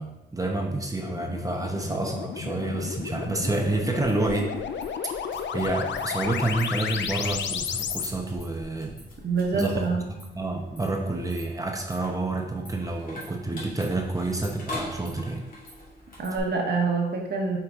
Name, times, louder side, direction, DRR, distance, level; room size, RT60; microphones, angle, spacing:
voice 1, 0.0-4.6 5.5-9.0 9.5-9.8 10.1-15.4, right 2 dB, 20° right, 2 dB, 0.9 m, -29 dB
sound 1, 1.0-8.1, left 7 dB, 70° left, 0.5 m, -32 dB
sound 2, 2.6-16.4, left 1 dB, 45° left, 2.2 m, -44 dB
voice 2, 9.2-10.1 16.2-17.6, right 4 dB, 60° right, 0 dB, 1.5 m, -26 dB
6.4 x 4.6 x 3.7 m, 0.93 s
cardioid pair, 90°, 19 cm